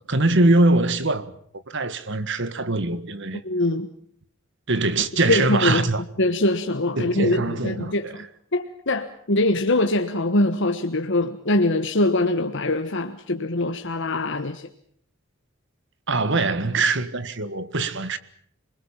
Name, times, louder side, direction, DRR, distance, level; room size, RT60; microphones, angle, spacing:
voice 1, 0.1-1.3 1.7-3.4 4.7-6.0 7.0-8.1 16.1-18.2, right 2 dB, 65° right, 1.8 m, -22 dB
voice 2, 3.4-3.9 5.3-5.9 6.2-8.2 8.5-14.7, left 2 dB, 65° left, 1.4 m, -23 dB
27.5 x 21.0 x 7.4 m
head